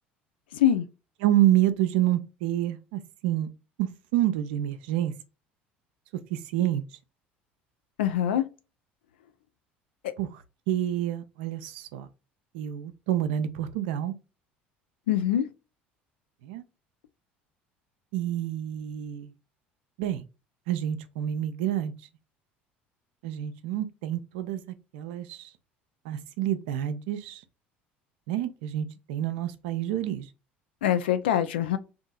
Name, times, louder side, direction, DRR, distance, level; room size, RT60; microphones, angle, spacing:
voice 1, 0.5-0.9 8.0-8.4 15.1-15.5 30.8-31.8, left 10 dB, 80° left, 0.4 m, -24 dB
voice 2, 1.2-3.5 3.8-5.1 6.3-6.8 10.2-12.1 12.5-14.1 16.4-16.6 18.1-19.3 20.0-20.3 20.7-21.9 23.2-24.6 24.9-25.5 26.1-27.4 28.3-30.3, right 12 dB, 70° right, 0.4 m, -28 dB
2.7 x 2.4 x 2.2 m
hypercardioid pair, 65°, 6 cm